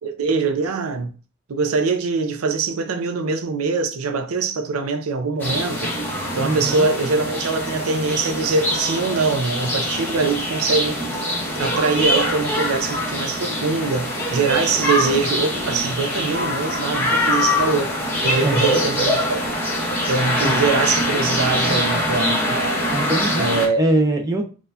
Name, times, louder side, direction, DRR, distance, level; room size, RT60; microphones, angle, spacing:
voice 1, 0.0-1.1 1.5-5.9 6.3-11.0 11.6-19.5 20.1-22.6 23.4-23.8, right 4 dB, 75° right, 0.5 m, -23 dB
sound 1, 5.4-23.7, equal, 10° left, 1.0 m, -23 dB
voice 2, 6.4-6.9 18.4-18.8 20.4-20.5 22.9-23.5 23.8-24.4, right 1 dB, 15° right, 0.4 m, -22 dB
4.1 x 2.3 x 2.6 m
head